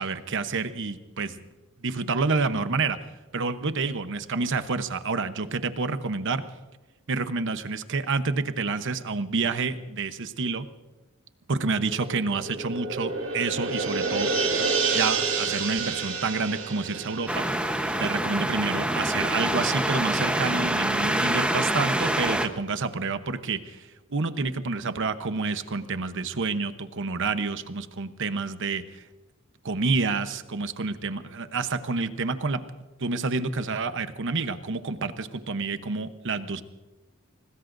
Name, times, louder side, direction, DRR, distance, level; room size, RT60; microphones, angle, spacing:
voice 1, 0.0-1.4 1.8-3.0 3.3-6.4 7.1-10.7 11.5-14.4 14.9-17.5 18.0-29.0 29.6-32.6 33.0-36.6, right 4 dB, 60° right, 10 dB, 0.9 m, -28 dB
sound 1, 11.8-18.8 19.1-19.2, right 4 dB, 80° right, 3.7 m, -29 dB
sound 2, 17.3-22.5, right 1 dB, 5° right, 1.0 m, -26 dB
24.5 x 19.5 x 2.6 m, 1.1 s
head